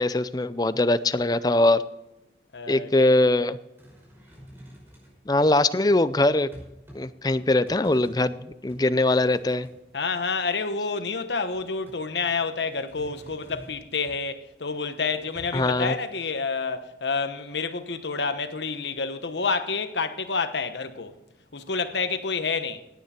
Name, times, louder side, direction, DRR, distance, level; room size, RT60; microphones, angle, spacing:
voice 1, 0.0-1.8 2.7-3.6 5.3-6.5 6.9-8.3 8.6-9.7 15.5-15.9, left 2 dB, 20° left, 0.5 m, -21 dB
voice 2, 2.5-3.2 9.9-21.2 21.5-22.8, left 4 dB, 80° left, 1.1 m, -29 dB
sound 1, 3.8-5.2 5.8-7.0 7.3-8.3 8.7-9.8 10.2-10.8 11.5-14.3 15.0-15.7, equal, 15° right, 5.4 m, -49 dB
17.5 x 9.5 x 4.4 m
head